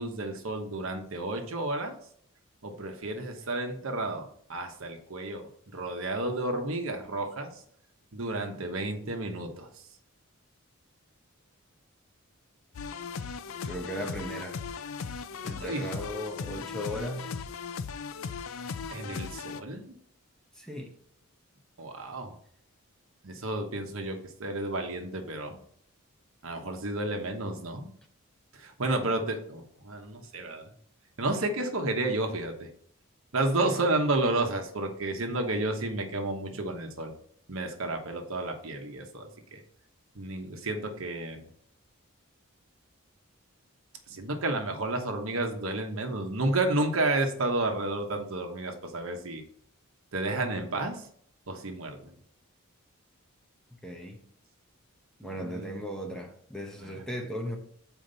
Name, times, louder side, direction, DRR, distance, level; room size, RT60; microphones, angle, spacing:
voice 1, 0.0-1.9 2.6-7.6 8.1-9.7 15.6-15.8 18.9-20.0 21.8-22.3 23.2-25.6 26.4-27.9 28.5-30.7 31.2-32.7 33.3-37.1 37.5-39.6 40.1-41.4 44.1-49.4 50.1-51.0 51.5-52.1 55.2-55.8 56.8-56.9, right 2 dB, 70° right, 1.1 m, -31 dB
sound 1, 12.7-19.6, left 5 dB, 70° left, 0.4 m, -38 dB
voice 2, 13.6-14.6 15.4-17.3 20.5-20.9 53.7-54.2 55.2-57.6, equal, 5° left, 0.8 m, -37 dB
7.2 x 4.6 x 4.0 m
head